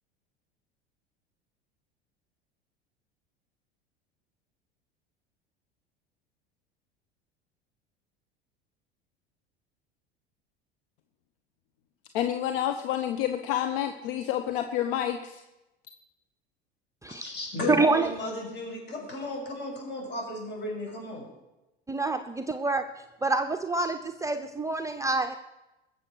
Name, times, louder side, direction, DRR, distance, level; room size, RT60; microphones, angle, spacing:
voice 1, 12.1-15.4, left 11 dB, 60° left, 8 dB, 1.1 m, -29 dB
voice 2, 17.1-21.3, left 1 dB, 35° left, 0 dB, 7.1 m, -35 dB
voice 3, 17.7-18.1 21.9-22.8 23.2-25.4, right 3 dB, 10° right, 6 dB, 0.7 m, -26 dB
21.0 x 7.7 x 6.4 m, 0.99 s
figure-of-eight pair, 75°, 31 cm